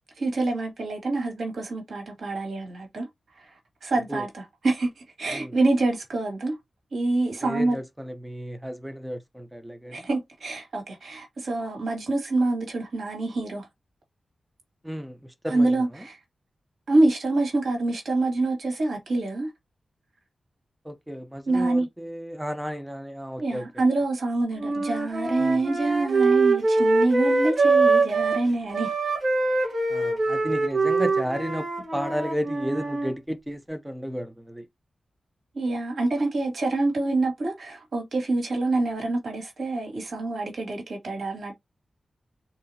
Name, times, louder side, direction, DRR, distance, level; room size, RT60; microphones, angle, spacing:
voice 1, 0.2-3.1 3.8-6.6 6.9-7.8 9.9-13.6 15.5-16.2 16.9-19.5 21.4-21.9 23.4-28.9 29.6-29.7 35.5-41.5, right 2 dB, 75° right, 1.8 m, -26 dB
voice 2, 7.4-10.1 14.8-16.1 20.8-23.8 25.4-25.6 29.9-34.7, equal, 5° right, 0.6 m, -33 dB
sound 1, 24.6-28.4 28.7-33.1, right 3 dB, 55° right, 1.2 m, -23 dB
3.9 x 2.8 x 2.7 m
wide cardioid pair, 115°, 0 cm